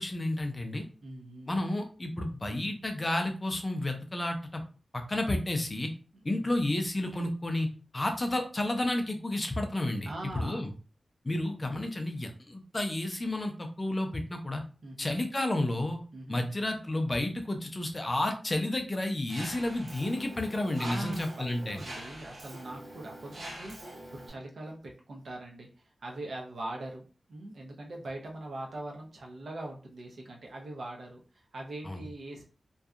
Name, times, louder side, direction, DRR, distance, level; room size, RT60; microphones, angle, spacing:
voice 1, 0.0-0.8 1.5-4.6 4.9-5.9 6.2-7.7 7.9-10.1 10.3-10.7 11.2-14.6 15.0-16.0 16.3-21.8 31.8-32.0, left 1 dB, 25° left, 4 dB, 0.4 m, -31 dB
voice 2, 1.0-1.6 6.1-6.5 10.1-10.7 14.8-15.1 16.1-16.4 20.8-25.7 26.0-27.0 27.3-32.4, right 1 dB, 65° right, 0 dB, 0.6 m, -42 dB
Mechanisms, 19.3-24.3, right 1 dB, 85° right, 0.9 m, -44 dB
2.7 x 2.2 x 2.3 m, 0.36 s
wide cardioid pair, 145°, 0 cm